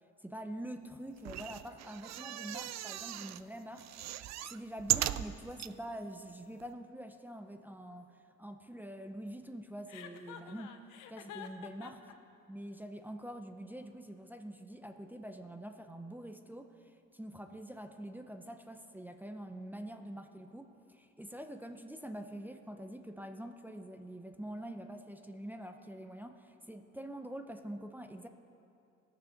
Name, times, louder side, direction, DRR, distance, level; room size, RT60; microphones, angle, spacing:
voice 1, 0.2-4.0 4.5-10.8 11.1-12.0 12.5-28.3, right 1 dB, 5° right, 5 dB, 0.7 m, -45 dB
sound 1, 1.2-3.4 3.8-5.7 6.3-6.4 6.6-6.7, right 13 dB, 60° right, 0.5 m, -37 dB
Chuckle chortle, 9.9-12.1, left 9 dB, 90° left, 0.9 m, -48 dB
18.0 x 7.0 x 5.9 m, 2.6 s
cardioid pair, 90°, 30 cm